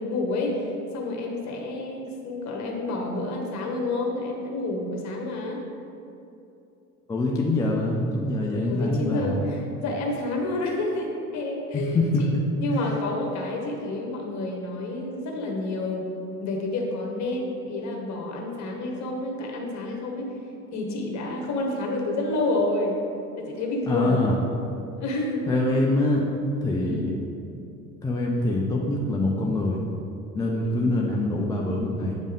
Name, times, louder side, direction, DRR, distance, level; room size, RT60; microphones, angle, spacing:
voice 1, 0.0-5.6 8.6-12.3 12.6-16.1 16.4-20.4 20.7-23.0 23.4-24.3 25.0-25.5 26.8-27.1 30.5-30.9, left 2 dB, 35° left, 0 dB, 1.4 m, -29 dB
voice 2, 7.1-9.5 11.7-12.2 23.9-24.3 25.5-26.2 26.6-27.1 28.0-29.8 30.4-32.2, left 2 dB, 10° left, -2 dB, 0.4 m, -24 dB
8.3 x 5.1 x 3.6 m, 2.7 s
figure-of-eight pair, 70°, 46 cm